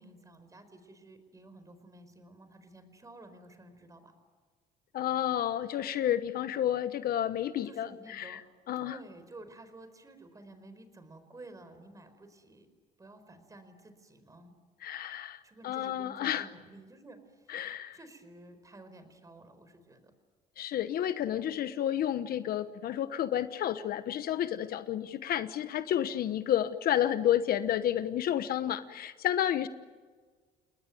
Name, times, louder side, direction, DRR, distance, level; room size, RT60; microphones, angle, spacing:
voice 1, 0.0-4.1 7.6-8.4 8.8-12.7 13.0-14.5 15.4-17.6 17.9-20.1, right 2 dB, 20° right, 10 dB, 4.6 m, -52 dB
voice 2, 4.9-8.4 8.7-9.0 14.8-16.5 17.5-18.0 20.6-29.7, left 11 dB, 65° left, 12 dB, 1.1 m, -31 dB
29.5 x 20.0 x 9.3 m, 1.5 s
cardioid pair, 110°, 17 cm